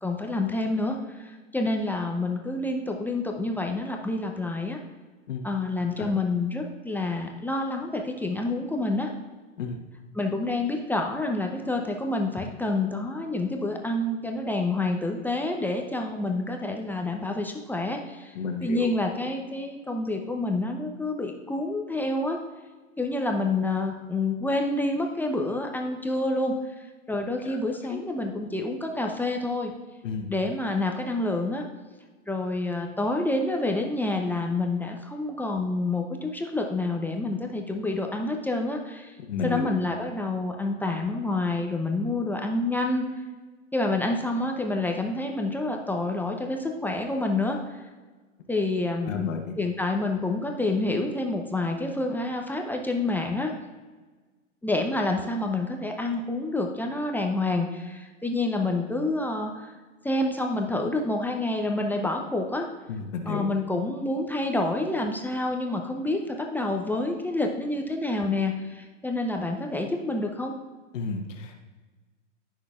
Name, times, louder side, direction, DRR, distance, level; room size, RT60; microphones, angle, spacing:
voice 1, 0.0-4.8 5.4-9.1 10.1-18.3 18.6-22.4 23.0-26.5 27.1-29.7 30.3-31.6 32.3-39.1 39.4-43.0 43.7-47.6 48.5-53.5 54.6-59.7 60.0-62.7 63.3-70.5, left 2 dB, 5° left, 2 dB, 0.6 m, -28 dB
voice 2, 18.3-18.9 27.4-27.6 27.9-28.0 30.0-30.3 39.3-39.7 49.1-49.6 62.9-63.5 70.9-71.6, left 5 dB, 70° left, 4 dB, 1.3 m, -32 dB
18.0 x 6.3 x 2.4 m, 1.3 s
hypercardioid pair, 115°, 39 cm